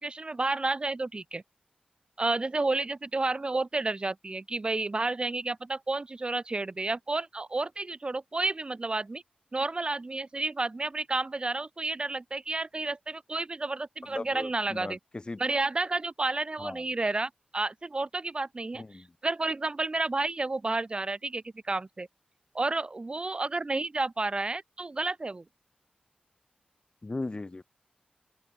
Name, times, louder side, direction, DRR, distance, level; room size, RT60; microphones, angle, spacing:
voice 1, 0.0-1.4 2.2-9.2 9.5-15.0 15.4-18.8 19.2-22.1 22.5-25.4, right 2 dB, 35° right, 1.2 m, -31 dB
voice 2, 14.1-15.4 16.6-16.8 18.7-19.1 27.0-27.6, left 2 dB, 30° left, 0.8 m, -38 dB
open air
cardioid pair, 70°, 3 cm